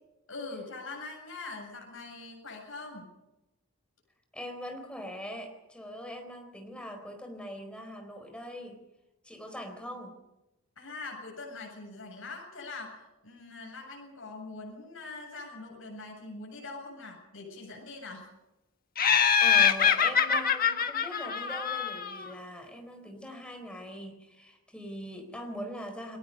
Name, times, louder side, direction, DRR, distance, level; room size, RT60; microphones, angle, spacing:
voice 1, 0.3-3.1 10.8-18.3, left 3 dB, 70° left, 0 dB, 7.9 m, -43 dB
voice 2, 4.3-8.8 9.2-10.1 19.4-26.2, equal, 5° left, 4 dB, 4.3 m, -41 dB
Laughter, 19.0-22.3, left 7 dB, 40° left, 1.4 m, -24 dB
30.0 x 20.0 x 5.5 m, 0.98 s
head